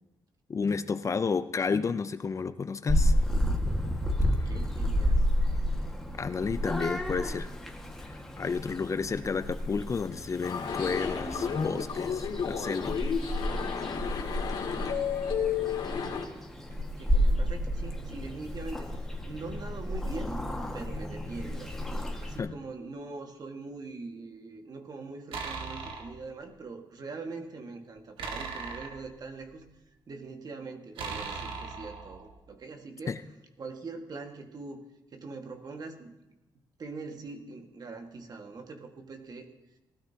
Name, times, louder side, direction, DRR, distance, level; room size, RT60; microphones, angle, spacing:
voice 1, 0.5-3.1 6.2-7.5 8.0-13.0 22.4-22.6 33.1-33.2, left 5 dB, 35° left, 12 dB, 0.6 m, -31 dB
Purr / Meow, 2.9-22.4, equal, 5° left, 1.8 m, -31 dB
voice 2, 4.5-5.2 17.0-20.4 20.7-21.7 22.2-33.2 33.6-34.8 35.1-36.1 36.8-39.5, right 3 dB, 50° right, 4 dB, 1.8 m, -42 dB
sound 1, 10.4-16.3, left 7 dB, 80° left, 2.4 m, -32 dB
sound 2, 25.3-26.2 28.2-29.7 31.0-32.4, right 4 dB, 90° right, 1.6 m, -38 dB
18.5 x 13.0 x 2.9 m, 1.0 s
cardioid pair, 100°, 8 cm